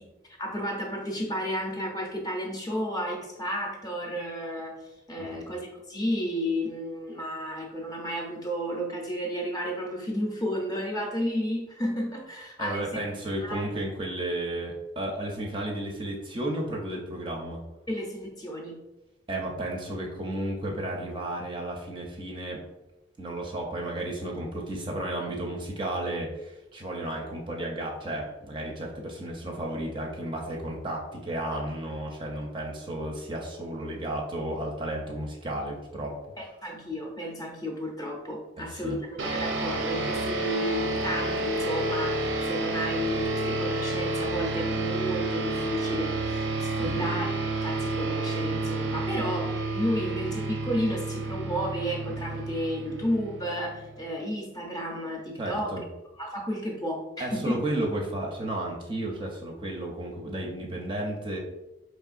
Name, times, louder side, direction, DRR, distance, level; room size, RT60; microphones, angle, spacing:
voice 1, 0.4-4.8 5.1-13.0 13.4-13.7 17.9-18.8 36.4-55.8 56.2-57.6, equal, 20° left, 0 dB, 0.6 m, -32 dB
voice 2, 12.6-17.6 19.3-22.6 23.2-36.2 38.6-39.0 46.8-47.1 55.4-55.8 57.2-61.4, right 1 dB, 25° right, -1 dB, 0.5 m, -33 dB
sound 1, 39.2-54.0, right 2 dB, 90° right, 0.6 m, -30 dB
4.5 x 3.2 x 2.4 m, 1.0 s
head